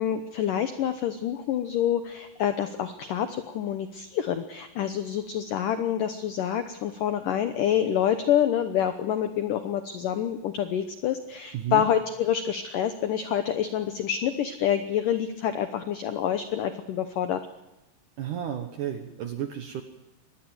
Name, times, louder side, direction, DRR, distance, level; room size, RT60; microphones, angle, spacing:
voice 1, 0.0-17.4, left 10 dB, 80° left, 9 dB, 1.9 m, -27 dB
voice 2, 11.5-11.9 18.2-19.8, right 10 dB, 70° right, 6 dB, 2.0 m, -32 dB
24.0 x 19.5 x 7.9 m, 1.0 s
omnidirectional pair, 5.3 m